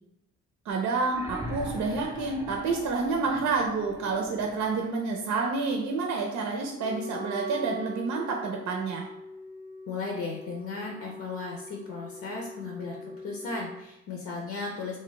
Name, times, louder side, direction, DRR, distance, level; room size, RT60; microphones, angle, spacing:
voice 1, 0.7-9.1, right 4 dB, 70° right, 1 dB, 0.6 m, -29 dB
sound 1, 1.1-4.9 6.1-6.2, right 1 dB, 10° right, 0.4 m, -40 dB
Wind instrument woodwind instrument, 6.8-13.8, left 2 dB, 30° left, 0.6 m, -43 dB
voice 2, 9.9-13.0 13.2-15.0, left 3 dB, 65° left, -1 dB, 0.7 m, -35 dB
2.6 x 2.2 x 4.0 m, 0.86 s
cardioid pair, 90°, 30 cm